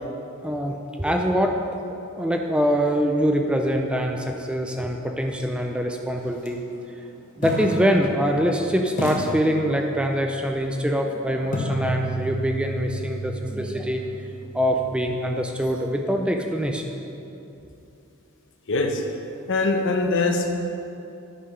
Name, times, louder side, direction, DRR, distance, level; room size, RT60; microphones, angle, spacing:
voice 1, 0.4-1.5 2.2-6.6 7.4-14.0 14.5-16.8, equal, 5° right, 3 dB, 0.4 m, -24 dB
sound 1, 6.3-6.5 7.4-8.6 9.0-10.2 11.5-15.4, right 1 dB, 35° left, 1.3 m, -32 dB
voice 2, 18.7-19.0 19.5-20.5, left 3 dB, 60° left, 3 dB, 0.9 m, -22 dB
9.8 x 5.6 x 5.5 m, 2.8 s
head